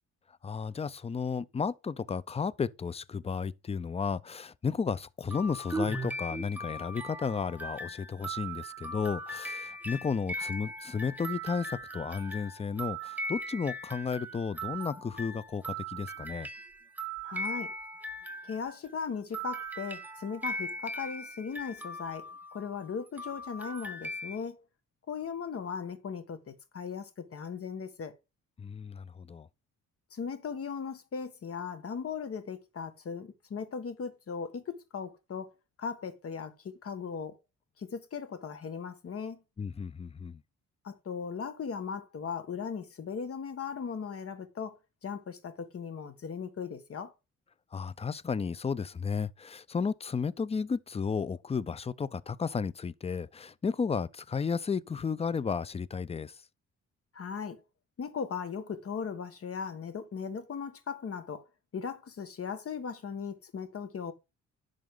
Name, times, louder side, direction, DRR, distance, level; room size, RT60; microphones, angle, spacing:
voice 1, 0.4-16.5 28.6-29.5 39.6-40.4 47.7-56.4, left 5 dB, 20° left, 0.5 m, -33 dB
sound 1, 5.3-18.9 19.3-24.4, right 1 dB, 5° right, 1.2 m, -39 dB
voice 2, 17.2-17.7 18.4-24.6 25.1-28.1 30.1-37.4 37.8-39.4 40.8-47.1 57.1-57.6 58.0-61.4 61.7-64.1, left 6 dB, 50° left, 1.7 m, -38 dB
10.5 x 6.3 x 3.8 m
cardioid pair, 90°, 30 cm